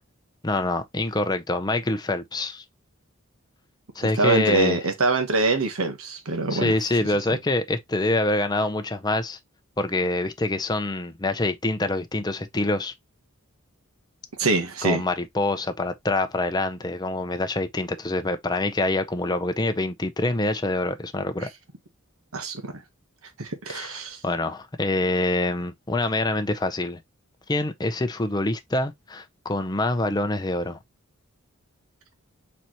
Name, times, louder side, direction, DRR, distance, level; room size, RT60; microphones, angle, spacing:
voice 1, 0.4-2.6 4.0-4.9 6.5-9.4 9.8-12.9 14.8-21.5 23.7-27.0 27.5-30.8, left 2 dB, 20° left, 0.6 m, -25 dB
voice 2, 4.0-6.7 14.4-15.0 22.3-22.8 23.4-24.2, right 3 dB, 90° right, 1.2 m, -24 dB
4.4 x 4.1 x 3.0 m
head